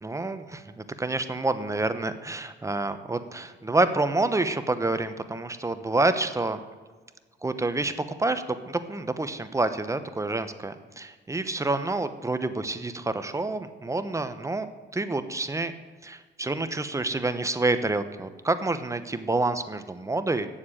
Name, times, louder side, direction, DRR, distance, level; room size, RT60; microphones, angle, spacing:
voice 1, 0.0-6.6 7.4-7.9 8.2-14.7 14.9-15.7 16.0-20.5, right 2 dB, 15° right, 10 dB, 0.8 m, -28 dB
8.3 x 7.3 x 8.8 m, 1.4 s
cardioid pair, 90°, 20 cm